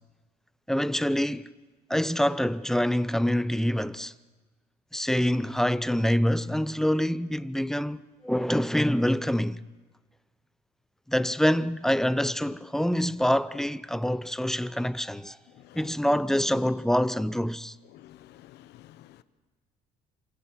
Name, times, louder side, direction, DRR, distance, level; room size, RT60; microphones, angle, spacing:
voice 1, 0.7-1.5 1.9-4.1 4.9-9.6 11.1-15.4 15.7-17.8, equal, 5° left, 0.7 m, -26 dB
voice 2, 17.9-19.2, left 14 dB, 85° left, 1.2 m, -51 dB
27.5 x 26.0 x 6.4 m
cardioid pair, 110°, 17 cm